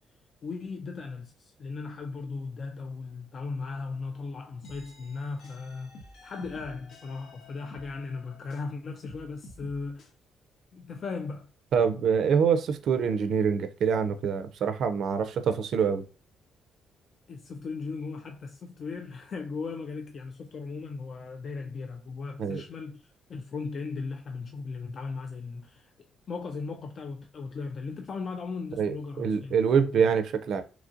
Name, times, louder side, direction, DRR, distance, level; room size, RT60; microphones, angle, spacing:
voice 1, 0.4-10.1 10.7-11.5 17.3-25.9 26.3-30.1, left 4 dB, 50° left, 0.3 m, -37 dB
sound 1, 4.6-8.7 9.0-10.1, left 1 dB, 80° left, 0.7 m, -50 dB
voice 2, 11.7-16.0 22.4-22.6 28.8-30.6, right 6 dB, 70° right, 0.4 m, -25 dB
2.9 x 2.5 x 2.4 m
cardioid pair, 90°, 0 cm